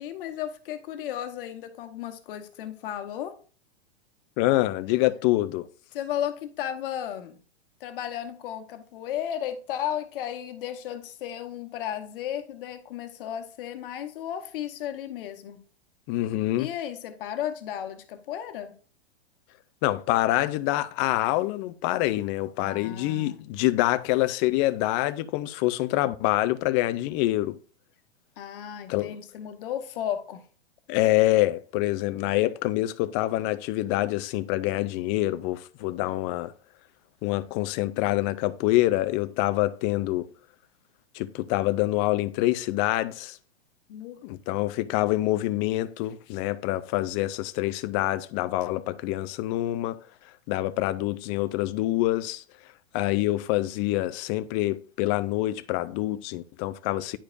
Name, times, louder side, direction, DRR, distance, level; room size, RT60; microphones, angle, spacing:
voice 1, 0.0-3.4 5.9-7.4 7.8-15.6 16.6-18.7 22.6-23.4 28.4-30.4 43.9-44.2, left 10 dB, 60° left, 1.1 m, -34 dB
voice 2, 4.4-5.7 16.1-16.7 19.8-27.6 28.9-29.2 30.9-36.5 37.2-40.3 41.1-43.4 44.2-50.0 50.5-52.4 52.9-57.2, left 16 dB, 30° left, 0.4 m, -26 dB
9.9 x 4.8 x 2.5 m
hypercardioid pair, 115°, 31 cm